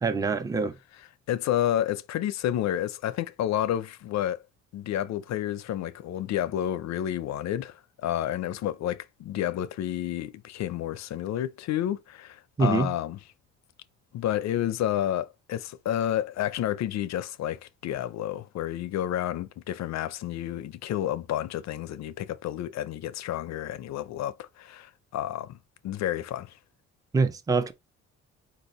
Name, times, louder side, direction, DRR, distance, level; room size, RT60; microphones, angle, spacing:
voice 1, 0.0-0.7 12.6-12.9 27.1-27.7, right 4 dB, 10° right, 0.5 m, -24 dB
voice 2, 1.3-4.4 4.7-13.2 14.1-25.6 25.8-26.5, left 11 dB, 65° left, 0.5 m, -30 dB
4.2 x 2.7 x 4.1 m
cardioid pair, 90°, 30 cm